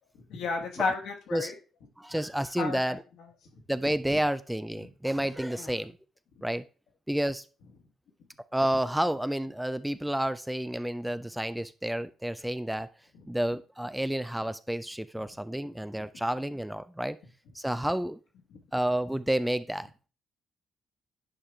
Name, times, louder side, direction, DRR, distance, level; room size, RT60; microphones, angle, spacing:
voice 1, 0.3-1.5 2.6-3.0 5.6-5.7 18.5-18.6, left 4 dB, 70° left, 2 dB, 1.7 m, -32 dB
voice 2, 2.0-3.0 3.7-6.0 6.4-6.6 7.1-7.5 8.5-12.9 13.3-17.2 17.5-18.2 18.7-19.9, right 1 dB, 5° right, 13 dB, 0.5 m, -30 dB
10.0 x 4.9 x 3.4 m, 0.35 s
hypercardioid pair, 45°, 0 cm